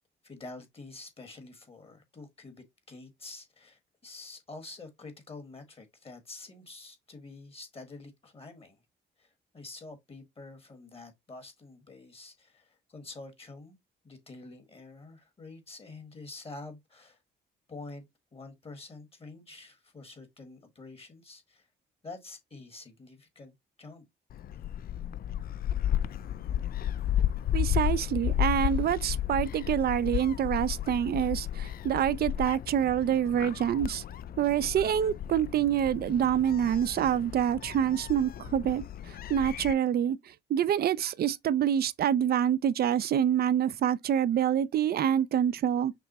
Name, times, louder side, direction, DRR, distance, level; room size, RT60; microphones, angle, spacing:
voice 1, 0.2-8.8 9.2-13.8 14.0-17.2 17.7-18.1 18.3-21.7 22.0-23.5 23.8-24.1, left 3 dB, 30° left, 1.4 m, -47 dB
Gull seagull, 24.3-39.7, left 11 dB, 50° left, 0.4 m, -33 dB
voice 2, 27.5-34.0 34.4-38.8 39.3-40.2 40.5-45.9, right 9 dB, 50° right, 0.5 m, -26 dB
6.0 x 2.1 x 4.1 m
cardioid pair, 90°, 20 cm